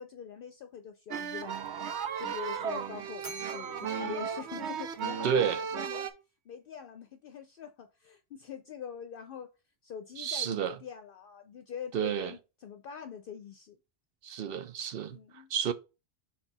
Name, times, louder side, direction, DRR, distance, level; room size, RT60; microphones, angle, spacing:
voice 1, 0.0-1.6 2.2-6.1 6.5-9.5 9.8-13.8 15.1-15.5, left 8 dB, 60° left, 0.7 m, -44 dB
sound 1, 1.1-6.1, right 7 dB, 80° right, 1.0 m, -35 dB
Bell, 3.2-5.5, right 3 dB, 40° right, 1.3 m, -48 dB
voice 2, 5.2-5.6 10.2-10.8 11.9-12.3 14.2-15.7, right 8 dB, 65° right, 0.7 m, -30 dB
5.2 x 4.5 x 4.0 m
omnidirectional pair, 1.1 m